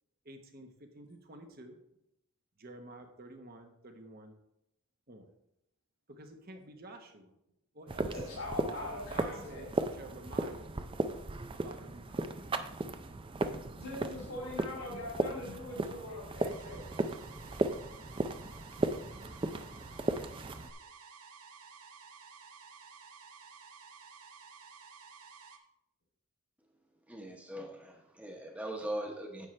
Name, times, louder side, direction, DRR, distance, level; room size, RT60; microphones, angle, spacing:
voice 1, 0.3-1.8 2.6-4.3 5.1-5.3 6.1-7.3 7.7-8.3 8.6-10.7 11.5-12.5, right 2 dB, 45° right, 5 dB, 1.1 m, -50 dB
sound 1, 7.9-20.7, right 2 dB, 25° right, 0.4 m, -36 dB
voice 2, 8.2-9.7 13.7-16.9, left 2 dB, 90° left, -5 dB, 2.9 m, -42 dB
sound 2, 16.4-25.6, right 5 dB, 85° right, 1.0 m, -53 dB
voice 3, 27.1-29.5, right 1 dB, 5° right, 2 dB, 1.1 m, -40 dB
9.9 x 7.9 x 3.3 m, 0.82 s
head